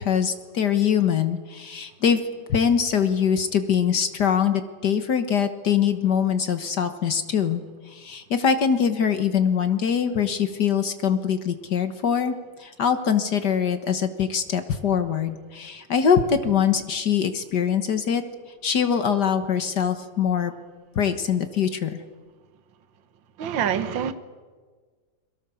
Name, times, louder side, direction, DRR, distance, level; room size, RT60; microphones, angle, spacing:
voice 1, 0.0-2.2 2.5-7.6 7.9-18.2 18.6-20.5 20.9-21.9, left 7 dB, 60° left, 1.1 m, -23 dB
voice 2, 23.4-24.1, right 8 dB, 50° right, 1.5 m, -25 dB
30.0 x 22.5 x 7.1 m
omnidirectional pair, 3.6 m